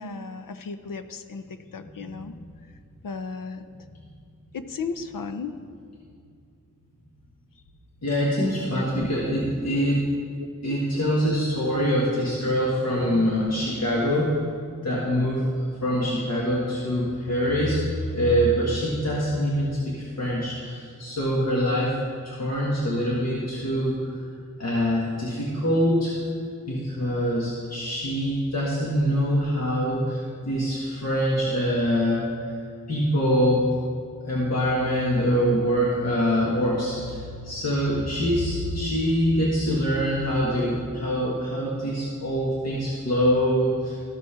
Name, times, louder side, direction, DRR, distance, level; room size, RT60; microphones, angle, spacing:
voice 1, 0.0-2.3 3.0-3.6 4.5-5.6 8.7-9.1 9.4-9.5 9.8-9.9 10.4-10.5, left 5 dB, 75° left, 10 dB, 0.6 m, -35 dB
voice 2, 8.0-10.0 10.6-14.5 14.8-21.9 22.2-24.2 24.6-26.2 26.7-32.6 32.9-33.7 34.2-44.0, equal, 50° left, -6 dB, 1.7 m, -24 dB
13.5 x 5.2 x 5.1 m, 2.3 s
wide cardioid pair, 75°, 33 cm